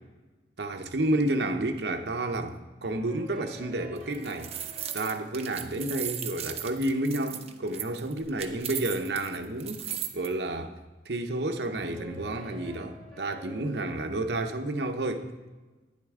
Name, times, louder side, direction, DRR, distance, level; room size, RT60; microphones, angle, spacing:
voice 1, 0.6-4.5 4.9-10.8 11.1-15.3, right 1 dB, 65° right, 0.8 m, -30 dB
sound 1, 2.8-8.7 11.7-15.3, right 2 dB, 5° left, 3.1 m, -51 dB
sound 2, 4.0-10.3, right 9 dB, 35° right, 0.7 m, -37 dB
11.5 x 10.0 x 3.6 m
head